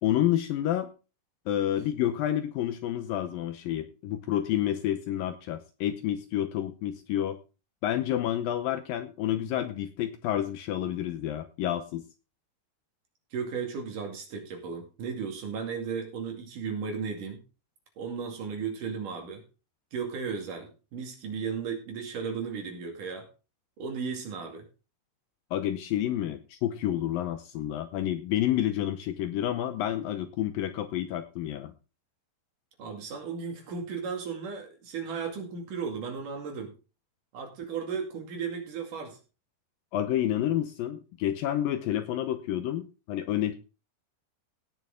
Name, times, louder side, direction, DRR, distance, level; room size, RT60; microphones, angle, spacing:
voice 1, 0.0-0.9 1.5-7.4 7.8-12.0 25.5-31.7 39.9-43.5, left 12 dB, 75° left, 9 dB, 2.3 m, -29 dB
voice 2, 13.3-17.4 18.0-19.4 19.9-23.3 23.8-24.7 32.8-36.7 37.3-39.2, right 6 dB, 55° right, 3 dB, 3.7 m, -35 dB
17.5 x 6.7 x 3.7 m, 0.32 s
omnidirectional pair, 4.6 m